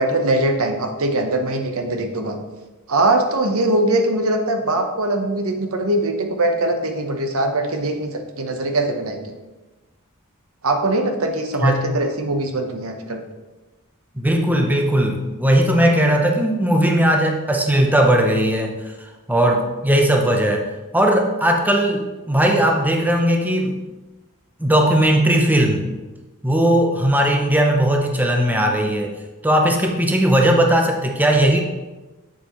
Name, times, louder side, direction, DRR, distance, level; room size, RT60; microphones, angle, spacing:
voice 1, 0.0-2.4 2.9-9.3 10.6-13.2, right 2 dB, 70° right, 5 dB, 0.9 m, -21 dB
voice 2, 14.2-18.8 19.3-20.7 20.9-23.8 24.6-25.8 26.4-29.2 29.4-31.6, right 1 dB, 10° right, 2 dB, 0.7 m, -18 dB
7.4 x 6.9 x 3.0 m, 1.1 s
head